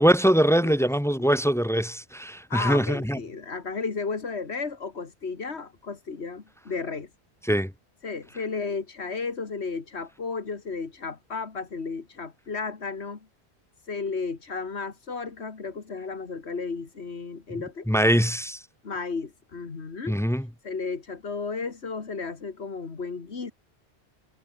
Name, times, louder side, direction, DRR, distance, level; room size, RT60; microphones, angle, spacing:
voice 1, 0.0-3.2 7.5-7.7 17.9-18.6 20.1-20.5, equal, 5° left, 0.6 m, -22 dB
voice 2, 2.5-7.1 8.0-13.3 13.8-17.9 18.8-20.2 20.6-23.5, left 4 dB, 80° left, 2.2 m, -33 dB
omnidirectional pair, 1.1 m